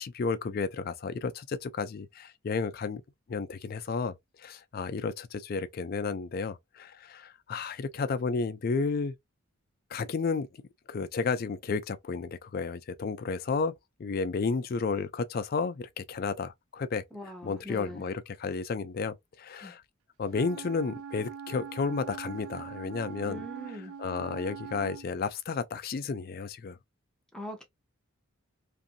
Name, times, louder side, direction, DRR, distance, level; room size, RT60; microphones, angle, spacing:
voice 1, 0.0-3.0 3.3-4.1 4.4-9.1 9.9-10.5 10.9-13.7 14.0-17.0 17.4-19.8 20.2-23.4 23.7-26.8, left 4 dB, 45° left, 0.3 m, -32 dB
voice 2, 17.1-18.0 19.6-19.7 23.2-23.9 27.3-27.6, equal, 5° left, 0.7 m, -41 dB
Wind instrument woodwind instrument, 20.3-25.1, right 7 dB, 70° right, 0.4 m, -42 dB
2.6 x 2.6 x 2.4 m
head